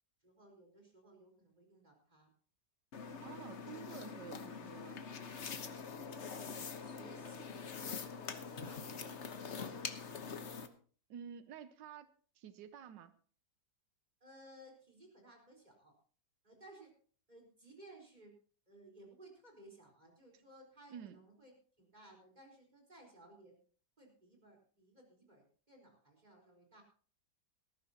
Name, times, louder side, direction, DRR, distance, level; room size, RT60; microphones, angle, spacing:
voice 1, 0.2-2.3 6.5-9.1 9.4-10.2 14.2-15.9 16.4-16.9 17.3-18.4 18.7-23.6 24.0-26.8, right 1 dB, 25° right, 1 dB, 4.4 m, -59 dB
sound 1, 2.9-10.7, left 5 dB, 45° left, 1.2 m, -44 dB
voice 2, 3.2-5.2 11.1-12.1 12.4-13.1 20.9-21.2, right 8 dB, 90° right, 11 dB, 1.5 m, -51 dB
18.5 x 14.5 x 2.9 m, 0.42 s
omnidirectional pair, 1.9 m